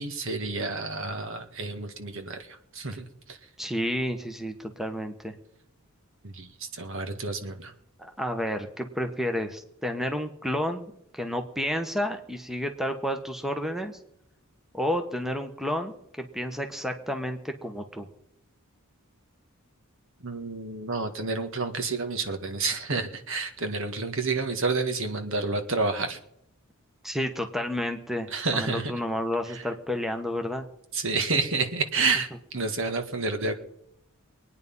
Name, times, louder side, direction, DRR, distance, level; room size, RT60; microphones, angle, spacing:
voice 1, 0.0-3.4 6.2-7.7 20.2-26.2 28.3-28.9 29.5-29.6 30.9-33.5, right 3 dB, 65° right, 7 dB, 1.8 m, -29 dB
voice 2, 3.6-5.4 8.0-14.0 14.7-18.1 27.0-30.7, equal, ahead, 6 dB, 1.2 m, -31 dB
23.0 x 9.7 x 5.5 m, 0.76 s
head